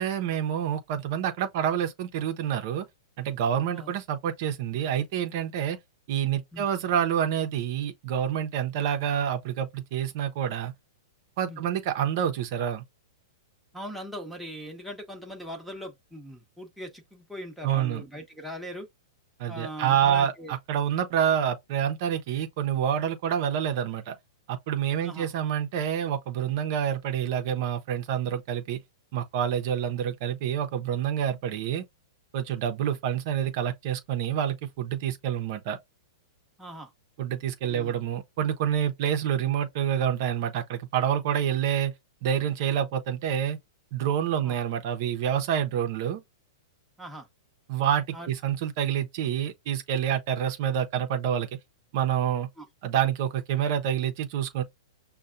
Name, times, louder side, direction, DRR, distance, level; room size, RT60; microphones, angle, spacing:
voice 1, 0.0-2.9 3.2-5.8 6.1-10.7 11.4-12.8 17.6-18.0 19.4-24.1 24.5-28.8 29.1-31.8 32.3-35.8 37.2-41.9 42.2-43.6 43.9-46.2 47.7-51.5 51.9-52.5 52.8-54.6, right 9 dB, 50° right, 0.7 m, -27 dB
voice 2, 13.7-18.9 19.5-20.5 25.0-25.3 32.9-33.0 36.6-36.9 37.6-37.9 44.4-44.6 47.0-47.3 48.1-48.3 52.6-52.7, equal, ahead, 0.9 m, -40 dB
5.4 x 2.2 x 2.5 m
hypercardioid pair, 135°, 2 cm